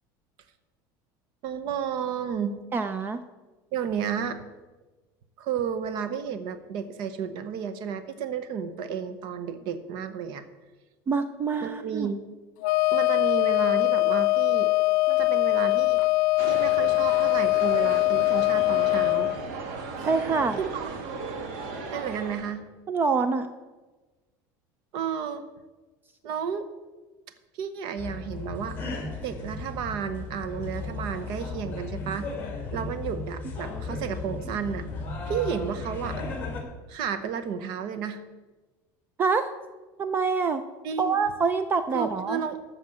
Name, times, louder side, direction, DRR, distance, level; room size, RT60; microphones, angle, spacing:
voice 1, 1.4-2.6 3.7-4.4 5.4-10.4 11.6-12.2 12.9-14.7 15.1-16.1 16.4-19.3 20.0-20.1 20.6-20.9 21.9-22.6 24.9-25.4 26.2-26.6 27.5-28.8 29.2-32.3 32.7-34.9 35.3-36.2 36.9-38.2 40.8-41.1 41.9-42.6, right 7 dB, 55° right, 10 dB, 0.9 m, -32 dB
voice 2, 2.7-3.2 11.1-12.1 20.0-20.6 22.9-23.5 39.2-39.5 40.0-40.6 41.0-42.4, right 4 dB, 20° right, 10 dB, 0.4 m, -25 dB
Wind instrument woodwind instrument, 12.6-19.4, left 20 dB, 85° left, 0.4 m, -22 dB
sound 1, 16.4-22.6, right 4 dB, 70° right, 1.8 m, -37 dB
sound 2, 28.0-36.6, left 3 dB, 20° left, 2.2 m, -35 dB
13.0 x 5.1 x 7.4 m, 1.2 s
cardioid pair, 165°, 10 cm